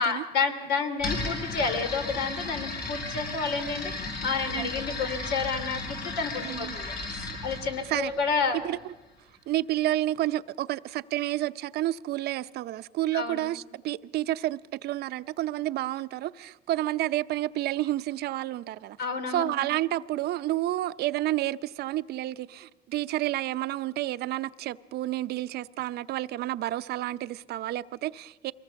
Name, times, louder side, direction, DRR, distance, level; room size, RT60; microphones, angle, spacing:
voice 1, 0.0-6.9 7.4-8.6 13.1-13.4 19.0-19.5, left 5 dB, 85° left, 2.9 m, -30 dB
sound 1, 1.0-8.8, left 3 dB, 65° left, 6.5 m, -35 dB
voice 2, 6.4-6.8 7.9-8.1 8.6-8.8 9.5-19.0 19.3-28.5, right 15 dB, 70° right, 0.6 m, -30 dB
24.0 x 19.0 x 7.0 m
cardioid pair, 110°, 17 cm